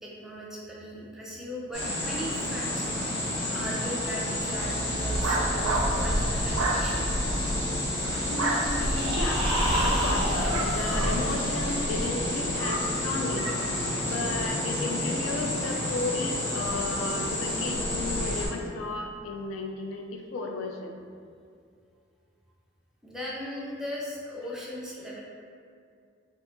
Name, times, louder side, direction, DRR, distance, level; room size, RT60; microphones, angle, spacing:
voice 1, 0.0-3.1 3.5-7.0 7.9-8.3 23.0-25.2, equal, 5° right, -5 dB, 0.4 m, -38 dB
sound 1, 1.7-18.5, left 1 dB, 25° left, 1.2 m, -29 dB
sound 2, 4.5-14.5, right 2 dB, 80° right, 0.4 m, -33 dB
voice 2, 8.2-9.5 9.8-13.5 14.0-21.0 24.4-24.5, left 3 dB, 70° left, 3 dB, 0.3 m, -34 dB
sound 3, 8.7-11.8, right 1 dB, 30° right, 0.9 m, -31 dB
2.7 x 2.3 x 3.6 m, 2.3 s
head